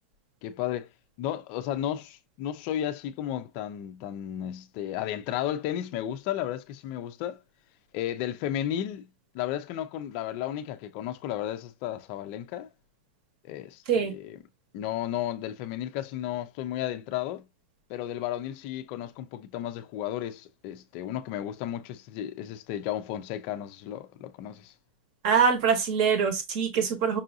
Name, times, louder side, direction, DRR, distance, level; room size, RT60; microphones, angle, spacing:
voice 1, 0.4-0.9 1.2-7.4 7.9-9.1 9.3-12.7 13.4-14.4 14.7-17.5 17.9-24.7, left 11 dB, 30° left, 0.4 m, -33 dB
voice 2, 25.2-27.2, right 6 dB, 35° right, 1.0 m, -24 dB
5.4 x 2.5 x 2.6 m
supercardioid pair, 175°, 6 cm